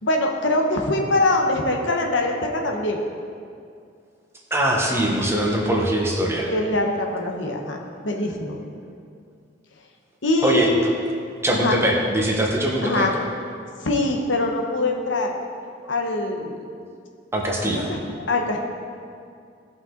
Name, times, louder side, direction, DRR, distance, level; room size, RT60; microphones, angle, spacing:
voice 1, 0.0-3.0 6.5-7.8 8.0-8.6 10.2-10.8 11.5-11.8 12.8-13.1 13.8-15.3 15.9-16.6 17.6-18.0 18.3-18.6, left 2 dB, 70° left, 1 dB, 1.1 m, -23 dB
voice 2, 4.5-6.5 10.4-10.9 11.4-13.1 17.3-17.9, right 1 dB, 15° right, -2 dB, 1.3 m, -22 dB
16.5 x 5.8 x 3.9 m, 2.3 s
head